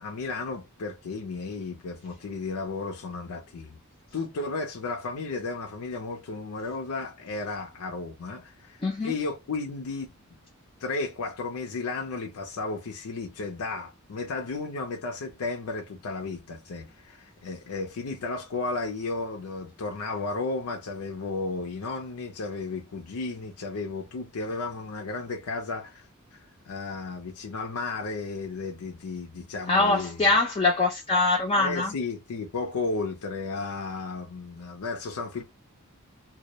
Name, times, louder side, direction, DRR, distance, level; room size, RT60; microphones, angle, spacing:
voice 1, 0.0-3.8 4.1-10.1 10.8-26.1 26.3-30.2 31.6-35.4, left 3 dB, 90° left, 0.5 m, -34 dB
voice 2, 8.8-9.1 29.7-31.9, left 3 dB, 25° left, 0.4 m, -23 dB
2.2 x 2.0 x 2.7 m
head